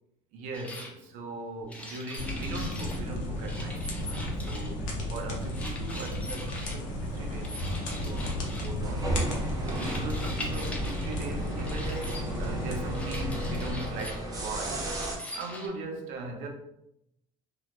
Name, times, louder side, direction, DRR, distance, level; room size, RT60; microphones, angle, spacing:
voice 1, 0.3-9.1 9.6-14.9 15.3-16.5, right 2 dB, 80° right, 0.5 m, -39 dB
sound 1, 0.5-0.9 1.7-3.0 3.4-4.8 5.5-6.8 7.4-8.8 9.7-11.2 11.7-12.2 12.9-14.2 14.8-15.7, left 1 dB, 10° left, 0.4 m, -42 dB
sound 2, 2.2-13.7, left 1 dB, 85° left, 0.6 m, -34 dB
sound 3, 6.8-15.2, right 1 dB, 30° right, 0.6 m, -36 dB
2.2 x 2.0 x 2.8 m
cardioid pair, 120°, 13 cm